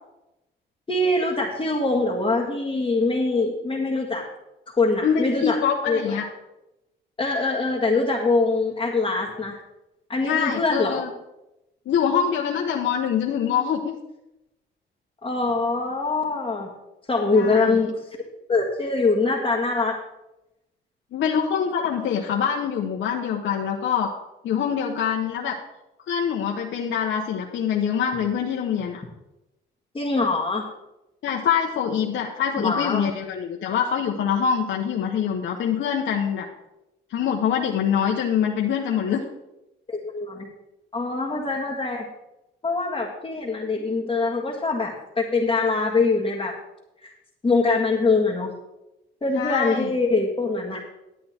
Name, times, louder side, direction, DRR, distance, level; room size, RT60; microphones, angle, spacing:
voice 1, 0.9-4.2 4.8-5.6 5.9-6.2 7.2-9.6 10.1-11.0 15.2-16.7 17.1-18.0 18.5-20.0 29.9-30.6 32.6-33.1 39.9-40.5 40.9-42.1 42.6-46.5 47.0-47.1 47.4-48.5 49.2-50.8, left 3 dB, 25° left, -4 dB, 1.7 m, -23 dB
voice 2, 5.0-6.3 10.2-11.1 11.9-13.9 17.3-17.8 21.1-24.1 24.4-25.6 26.1-29.0 31.2-36.5 37.1-39.2 49.3-49.9, left 7 dB, 70° left, -1 dB, 1.1 m, -24 dB
11.5 x 8.5 x 4.4 m, 0.94 s
cardioid pair, 90°, 20 cm